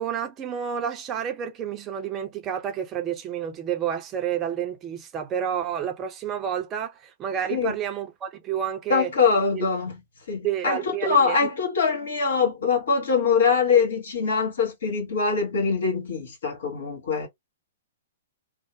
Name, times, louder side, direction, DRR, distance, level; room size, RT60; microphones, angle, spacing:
voice 1, 0.0-9.1 9.5-9.7 10.4-11.5, right 9 dB, 25° right, 0.6 m, -30 dB
voice 2, 8.9-10.0 10.3-17.3, left 5 dB, 65° left, 1.4 m, -23 dB
2.7 x 2.1 x 2.8 m
figure-of-eight pair, 110°, 0 cm